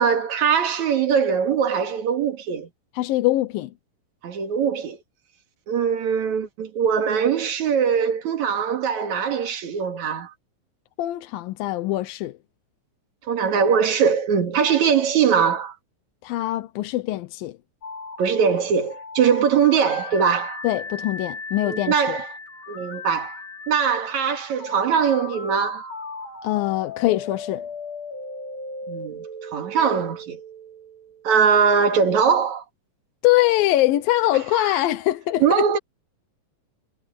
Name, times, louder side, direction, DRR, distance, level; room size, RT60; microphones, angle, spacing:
voice 1, 0.0-2.7 4.2-5.0 5.7-10.3 13.3-15.8 18.2-20.6 21.6-22.4 22.7-23.4 23.7-25.9 28.9-29.2 29.5-30.4 31.2-32.6 34.5-34.6 35.4-35.8, right 7 dB, 60° right, 3.3 m, -21 dB
voice 2, 3.0-3.7 11.0-12.4 16.2-17.6 20.6-22.2 26.4-27.7 33.2-35.7, left 16 dB, 85° left, 2.7 m, -23 dB
sound 1, 17.8-31.7, left 3 dB, 60° left, 7.0 m, -37 dB
omnidirectional pair, 4.0 m